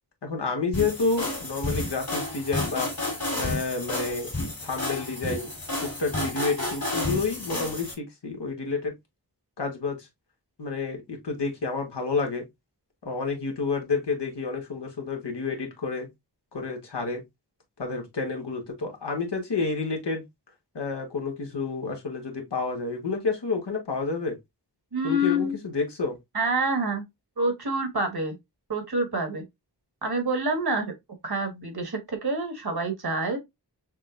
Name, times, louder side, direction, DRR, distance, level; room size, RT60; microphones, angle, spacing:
voice 1, 0.2-2.9 3.4-4.4 4.6-5.5 5.8-8.9 9.6-10.0 10.6-12.4 13.0-16.1 16.5-17.2 17.8-20.2 20.7-24.4 25.0-26.2, left 4 dB, 80° left, 1.3 m, -29 dB
sound 1, 0.7-7.9, left 2 dB, 55° left, 2.1 m, -31 dB
voice 2, 24.9-25.5 26.3-27.0 27.4-28.3 28.7-29.4 30.0-30.9 31.2-33.4, right 1 dB, 65° right, 1.4 m, -27 dB
6.2 x 2.1 x 2.4 m
wide cardioid pair, 55°, 41 cm